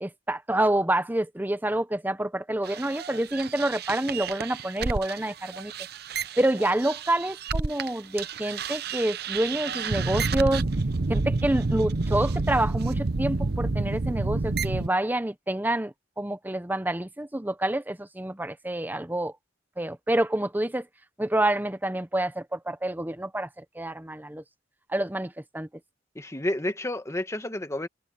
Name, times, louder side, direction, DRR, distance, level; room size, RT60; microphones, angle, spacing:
voice 1, 0.0-5.7 6.4-10.6 11.1-19.3 19.8-20.9 21.2-23.5 23.7-24.4 24.9-25.7, right 1 dB, 10° right, 0.8 m, -27 dB
sound 1, 2.7-7.9 8.2-14.9, right 3 dB, 60° right, 0.8 m, -29 dB
voice 2, 26.1-27.9, left 1 dB, 15° left, 1.5 m, -30 dB
head